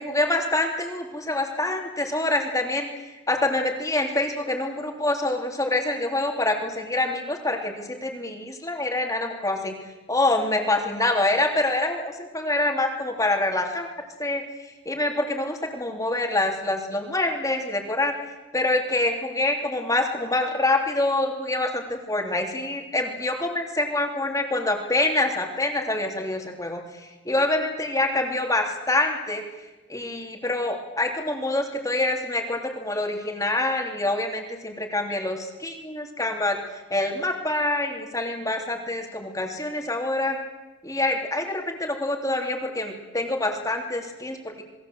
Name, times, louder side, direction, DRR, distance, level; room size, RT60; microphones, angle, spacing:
voice 1, 0.0-2.9 3.3-9.7 10.1-14.4 14.8-18.1 18.5-29.4 29.9-36.6 36.9-40.4 40.8-44.6, left 2 dB, 15° left, 2 dB, 3.2 m, -26 dB
28.5 x 21.0 x 8.1 m, 1.1 s
head